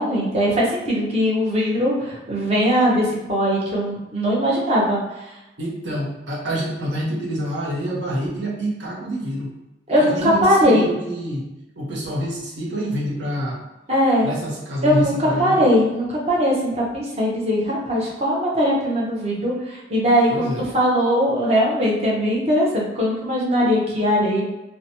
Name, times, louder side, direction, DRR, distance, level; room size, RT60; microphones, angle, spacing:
voice 1, 0.0-5.0 9.9-10.8 13.9-14.3 14.8-24.4, equal, 35° right, -4 dB, 0.7 m, -20 dB
voice 2, 5.6-9.5 10.0-11.4 11.8-13.6 14.2-15.6 20.3-20.6, equal, 75° right, -3 dB, 0.8 m, -27 dB
2.8 x 2.1 x 2.8 m, 1.0 s
head